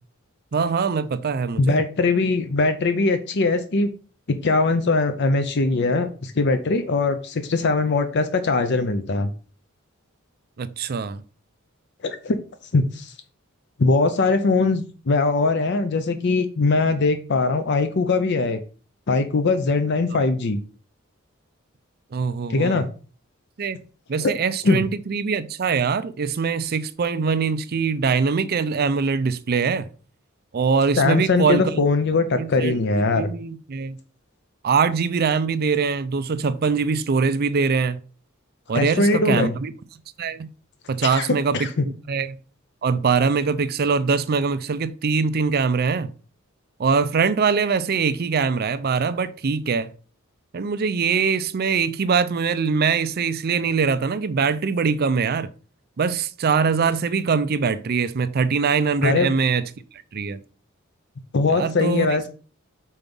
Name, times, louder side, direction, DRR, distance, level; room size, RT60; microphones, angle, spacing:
voice 1, 0.5-1.8 10.6-11.2 22.1-22.8 23.6-23.8 24.1-29.9 30.5-31.8 32.4-34.0 34.6-38.0 38.7-39.7 40.2-40.5 40.9-42.4 42.8-46.1 46.8-49.9 50.5-55.5 56.0-59.6 60.1-60.4 61.5-62.2, right 5 dB, 50° right, 0.5 m, -23 dB
voice 2, 1.6-3.9 4.4-9.3 12.0-12.4 12.7-13.1 13.8-18.6 19.1-20.6 22.5-22.9 24.2-24.3 24.6-24.8 31.0-33.3 38.7-39.5 41.0-41.9 59.0-59.3 61.3-62.3, left 3 dB, 55° left, 0.6 m, -21 dB
5.4 x 4.6 x 5.3 m
head